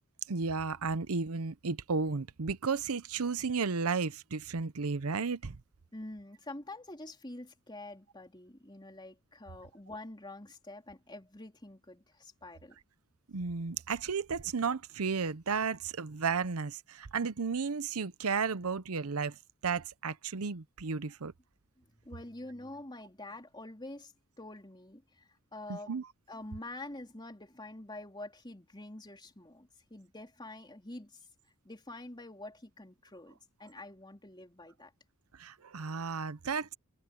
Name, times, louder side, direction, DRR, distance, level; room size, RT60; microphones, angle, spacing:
voice 1, 0.3-5.6 13.3-19.4 19.6-21.3 25.7-26.1 35.4-36.7, right 5 dB, 75° right, 0.8 m, -33 dB
voice 2, 5.9-12.8 21.8-25.9 26.3-31.2 31.7-34.9, left 2 dB, 20° left, 3.5 m, -47 dB
head